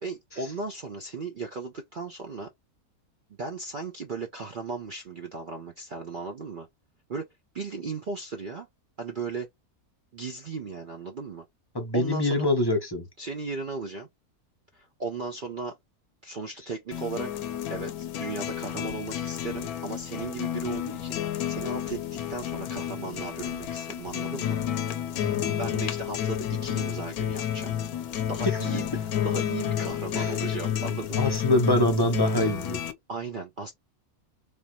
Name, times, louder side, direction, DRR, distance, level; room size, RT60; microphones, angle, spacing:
voice 1, 0.0-2.5 3.4-6.7 7.1-7.3 7.5-8.7 9.0-9.5 10.1-11.5 11.9-12.5 13.2-14.1 14.7-15.8 16.2-17.3 17.7-24.6 25.1-25.3 25.6-27.8 28.3-31.4 33.1-33.7, right 4 dB, 65° right, 0.5 m, -36 dB
voice 2, 11.7-13.0 25.2-25.6 28.4-28.6 30.2-30.3 31.2-32.8, left 1 dB, 20° left, 0.6 m, -25 dB
sound 1, 16.9-32.9, left 10 dB, 80° left, 1.1 m, -31 dB
3.4 x 2.5 x 2.8 m
omnidirectional pair, 1.6 m